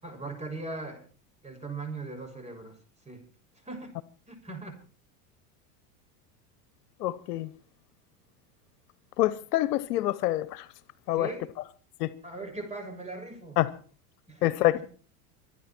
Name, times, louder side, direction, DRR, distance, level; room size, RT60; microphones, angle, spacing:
voice 1, 0.0-1.0 1.4-2.8 3.0-3.2 3.6-3.9 4.3-4.7 11.1-11.5 12.2-13.6 14.3-14.5, right 3 dB, 15° right, 6.7 m, -39 dB
voice 2, 7.0-7.5 9.2-10.7 11.1-11.3 12.0-12.1 13.6-13.7 14.4-14.8, left 15 dB, 80° left, 1.1 m, -26 dB
25.5 x 10.0 x 4.5 m
hypercardioid pair, 105°, 47 cm